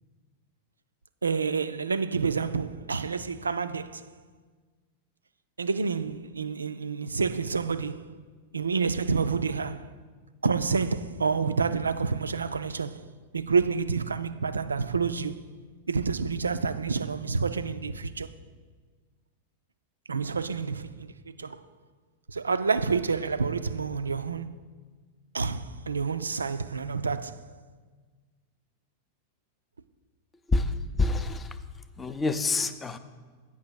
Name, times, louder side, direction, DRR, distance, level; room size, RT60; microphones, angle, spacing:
voice 1, 1.2-4.1 5.6-8.1 8.5-9.9 10.4-13.0 13.3-15.4 15.9-18.3 20.1-21.1 21.4-21.6 22.3-24.6 25.3-27.5, right 5 dB, 75° right, 0.3 m, -28 dB
voice 2, 30.5-31.6 32.0-33.0, left 3 dB, 15° left, 0.5 m, -27 dB
8.7 x 5.7 x 6.2 m
figure-of-eight pair, 90°, 0 cm